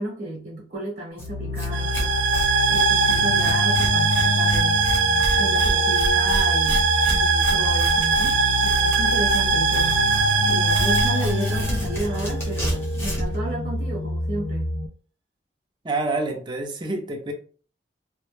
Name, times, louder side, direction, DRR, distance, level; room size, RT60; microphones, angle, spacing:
voice 1, 0.0-2.2 2.7-4.8 5.3-10.1 10.4-14.8, right 1 dB, 60° right, -4 dB, 0.8 m, -33 dB
sound 1, 1.2-14.9, left 2 dB, 55° left, 0.3 m, -28 dB
Tearing, 1.2-1.3 1.5-1.7 1.9-13.3, equal, 15° left, 0.7 m, -31 dB
sound 2, 1.7-12.2, right 4 dB, 90° right, 0.4 m, -21 dB
voice 2, 15.8-17.3, right 2 dB, 25° right, 4 dB, 0.4 m, -27 dB
2.1 x 2.0 x 3.0 m, 0.41 s
head